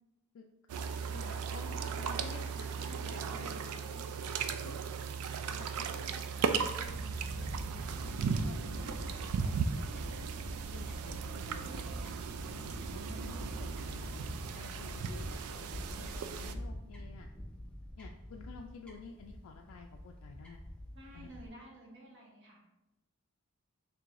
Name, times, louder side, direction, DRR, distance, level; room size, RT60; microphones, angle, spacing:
sound 1, 0.7-16.5, right 6 dB, 90° right, 0.3 m, -37 dB
voice 1, 1.1-4.3 4.6-4.8 5.5-10.3 10.7-11.7 12.5-17.3 18.0-20.6 21.1-21.3, left 4 dB, 70° left, 2 dB, 0.3 m, -52 dB
Fowl / Bird, 6.8-21.5, equal, 5° left, 0.6 m, -45 dB
voice 2, 11.2-11.8 20.9-22.6, right 1 dB, 55° right, -2 dB, 1.0 m, -52 dB
4.6 x 3.2 x 2.5 m, 0.98 s
head